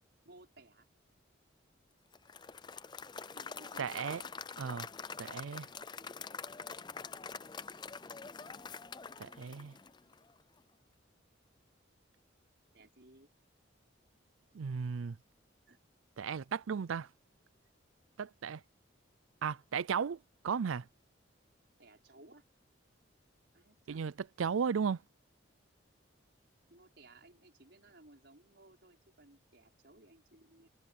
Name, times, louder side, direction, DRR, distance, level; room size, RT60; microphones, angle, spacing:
voice 1, 0.2-0.9 3.3-4.2 12.7-13.3 15.7-15.8 21.8-22.4 23.5-24.0 26.7-30.7, right 2 dB, 60° right, 5.3 m, -59 dB
Applause / Crowd, 2.1-10.3, left 5 dB, 20° left, 0.4 m, -46 dB
voice 2, 3.8-4.2 4.6-4.9 5.2-5.7 9.2-9.7 14.5-15.2 16.2-17.1 18.2-18.6 19.4-20.2 20.4-20.8 23.9-24.1 24.4-25.0, right 6 dB, 90° right, 0.5 m, -35 dB
head